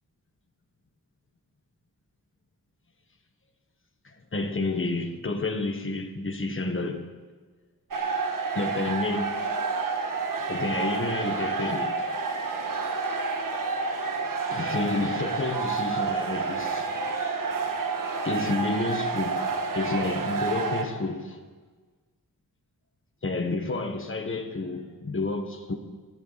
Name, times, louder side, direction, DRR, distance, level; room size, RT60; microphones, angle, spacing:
voice 1, 4.0-7.1 8.5-9.4 10.4-12.2 14.5-17.0 18.2-21.4 23.2-25.7, left 2 dB, 35° left, 1.5 m, -30 dB
sound 1, 7.9-20.8, right 4 dB, 60° right, 1.6 m, -29 dB
22.5 x 15.0 x 4.2 m
wide cardioid pair, 155°, 36 cm